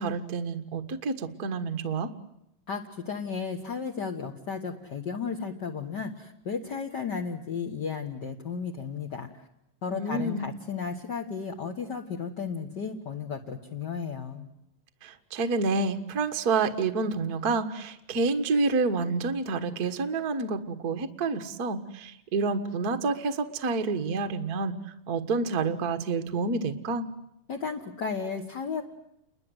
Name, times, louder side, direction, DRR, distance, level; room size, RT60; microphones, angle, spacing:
voice 1, 0.0-2.1 9.9-10.5 15.0-24.7 25.1-27.1, right 3 dB, 50° right, 8 dB, 1.1 m, -28 dB
voice 2, 2.7-9.4 9.8-14.5 27.5-28.8, left 5 dB, 50° left, 2 dB, 1.3 m, -34 dB
30.0 x 22.0 x 8.0 m, 0.80 s
omnidirectional pair, 4.3 m